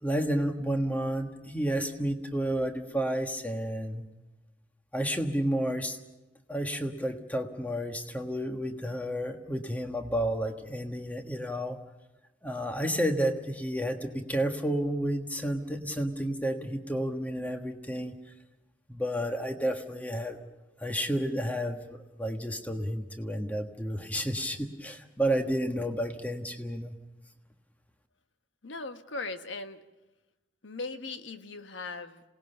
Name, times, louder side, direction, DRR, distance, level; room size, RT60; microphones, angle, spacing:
voice 1, 0.0-4.1 4.9-6.0 6.5-11.8 12.4-18.2 18.9-20.4 20.8-26.9, equal, 10° left, 5 dB, 1.4 m, -31 dB
voice 2, 28.6-29.8 30.6-32.2, left 3 dB, 85° left, 8 dB, 1.3 m, -38 dB
27.5 x 18.5 x 6.8 m, 1.1 s
head